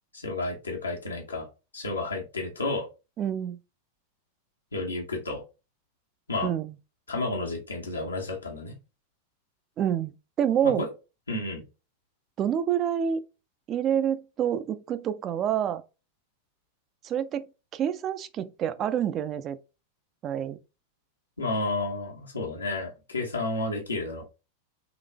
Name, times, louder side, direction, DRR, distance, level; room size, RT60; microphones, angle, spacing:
voice 1, 0.1-1.5 1.7-2.9 4.7-5.4 6.3-6.5 7.1-8.7 10.6-10.9 11.3-11.6 21.4-24.2, left 2 dB, 75° left, 1.3 m, -31 dB
voice 2, 3.2-3.6 6.4-6.7 9.8-10.8 12.4-13.2 13.7-15.8 17.0-17.5 17.7-19.6 20.2-20.6, right 9 dB, 30° right, 0.5 m, -27 dB
4.0 x 3.2 x 3.4 m
figure-of-eight pair, 90°, 0 cm